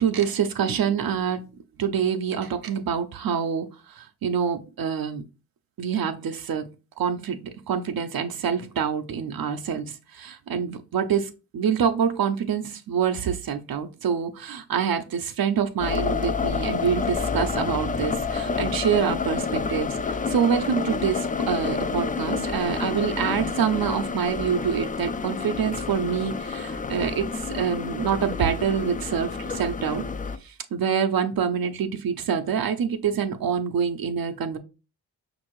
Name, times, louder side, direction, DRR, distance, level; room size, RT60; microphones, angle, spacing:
voice 1, 0.0-1.4 1.8-3.7 4.0-5.2 5.8-6.7 7.0-7.4 7.7-27.3 27.5-30.0 30.4-34.6, right 7 dB, 60° right, 6 dB, 0.6 m, -26 dB
sound 1, 15.8-30.4, left 5 dB, 20° left, 0.3 m, -29 dB
5.3 x 2.6 x 3.0 m, 0.31 s
cardioid pair, 60°, 40 cm